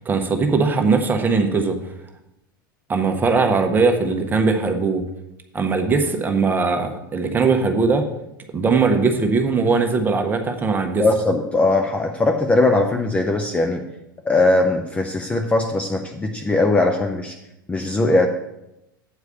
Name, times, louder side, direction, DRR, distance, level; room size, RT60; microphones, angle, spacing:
voice 1, 0.1-1.8 2.9-5.0 5.5-8.0 8.5-11.0, right 4 dB, 15° right, 5 dB, 1.0 m, -20 dB
voice 2, 11.0-13.8 14.2-17.4 17.7-18.3, left 2 dB, 10° left, 3 dB, 0.5 m, -19 dB
8.2 x 4.7 x 6.8 m, 0.87 s
figure-of-eight pair, 85°, 11 cm